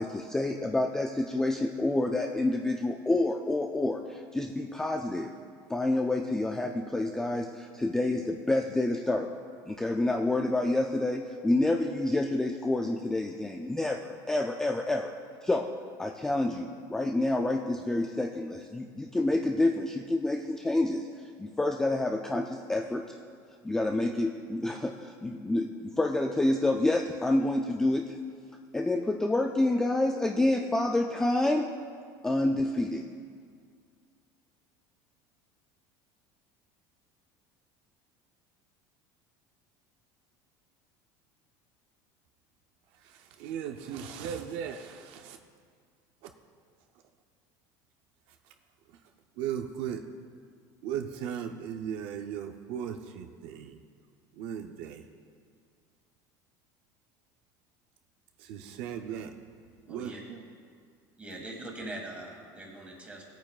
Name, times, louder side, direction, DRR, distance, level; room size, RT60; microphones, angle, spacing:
voice 1, 0.0-5.3 5.7-9.3 9.7-15.1 15.4-15.7 16.0-23.2 23.6-28.2 28.7-31.7 32.2-33.1, left 2 dB, 5° left, 3 dB, 0.3 m, -28 dB
voice 2, 43.0-45.4 46.2-46.3 49.4-50.0 50.8-53.8 54.4-55.0 58.4-59.3 59.9-60.4, right 8 dB, 65° right, 6 dB, 0.6 m, -37 dB
voice 3, 59.9-60.2 61.2-63.2, right 1 dB, 15° right, 0 dB, 1.7 m, -42 dB
17.0 x 9.0 x 2.4 m, 2.2 s
cardioid pair, 150°, 10 cm